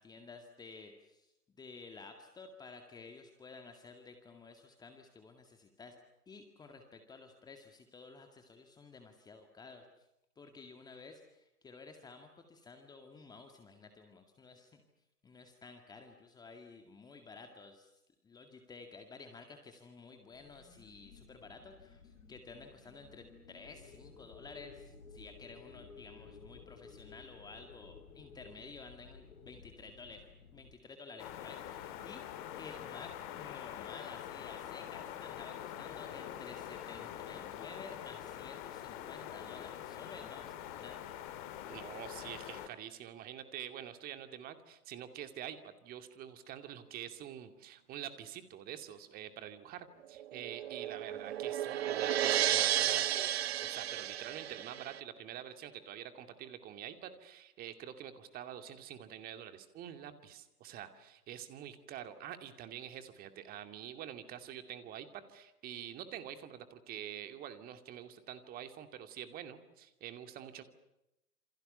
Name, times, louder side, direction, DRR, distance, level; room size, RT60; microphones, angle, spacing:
voice 1, 0.0-6.0 6.3-10.1 10.4-14.8 15.2-17.9 18.2-40.9, left 4 dB, 10° left, 5 dB, 2.0 m, -53 dB
sound 1, 20.3-30.8, left 5 dB, 55° left, 4.8 m, -56 dB
sound 2, 31.2-42.7, left 11 dB, 30° left, 2.6 m, -45 dB
voice 2, 41.7-53.3 53.6-70.6, right 10 dB, 20° right, 9 dB, 2.4 m, -46 dB
sound 3, 50.2-55.0, right 11 dB, 45° right, 0.9 m, -33 dB
28.0 x 27.5 x 6.8 m, 0.89 s
figure-of-eight pair, 125°, 45 cm